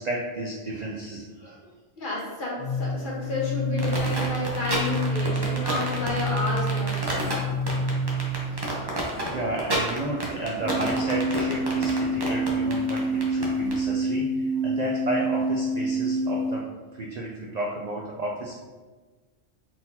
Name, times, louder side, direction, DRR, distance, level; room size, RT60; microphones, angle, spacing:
voice 1, 0.0-1.7 8.4-16.7 16.9-18.6, right 2 dB, 80° right, -2 dB, 0.3 m, -32 dB
voice 2, 2.0-7.4, left 1 dB, 45° left, -5 dB, 1.2 m, -31 dB
sound 1, 2.6-8.6 10.6-16.6, right 1 dB, 90° left, 1.8 m, -27 dB
sound 2, 3.8-13.8, right 1 dB, 25° right, 0.7 m, -30 dB
4.3 x 3.9 x 2.7 m, 1.3 s
omnidirectional pair, 1.3 m